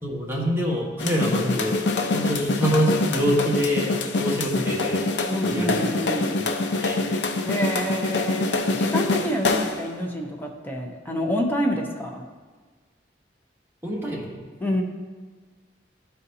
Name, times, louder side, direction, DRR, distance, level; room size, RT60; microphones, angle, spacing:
voice 1, 0.0-1.8 2.1-5.1 5.4-5.9 6.3-6.4 6.8-7.0 13.8-14.4, equal, 15° right, -4 dB, 1.4 m, -25 dB
drum sample, 1.0-9.9, left 3 dB, 75° left, 0.5 m, -25 dB
voice 2, 5.3-6.4 7.4-8.5 8.7-12.2 14.6-14.8, equal, 10° left, 1 dB, 0.7 m, -27 dB
12.0 x 4.1 x 2.7 m, 1.4 s
head